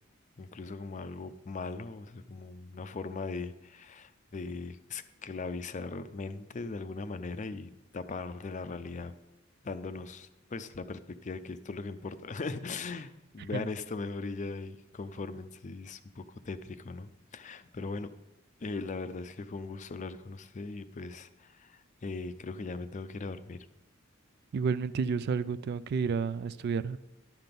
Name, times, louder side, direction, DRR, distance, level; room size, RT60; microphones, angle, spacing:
voice 1, 0.4-9.1 9.6-18.1 18.6-23.7, left 3 dB, 35° left, 12 dB, 0.5 m, -39 dB
voice 2, 24.5-27.0, right 5 dB, 55° right, 16 dB, 0.3 m, -30 dB
11.0 x 5.9 x 5.2 m, 0.97 s
head